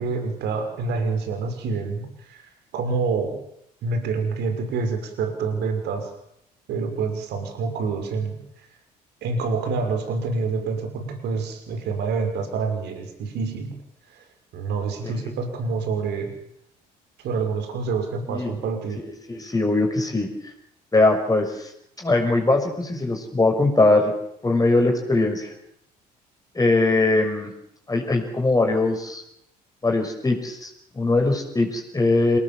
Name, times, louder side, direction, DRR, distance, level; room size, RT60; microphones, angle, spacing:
voice 1, 0.0-3.4 3.8-6.1 6.7-8.7 9.2-13.8 14.1-14.2 14.5-16.3 17.2-19.0, right 4 dB, 55° right, 6 dB, 6.1 m, -27 dB
voice 2, 19.0-20.3 20.9-21.7 22.0-24.1 24.4-25.5 26.5-27.5 27.9-29.2 29.8-30.7 30.9-32.4, left 2 dB, 15° left, 3 dB, 6.1 m, -21 dB
27.5 x 18.5 x 7.6 m, 0.73 s
figure-of-eight pair, 55°, 21 cm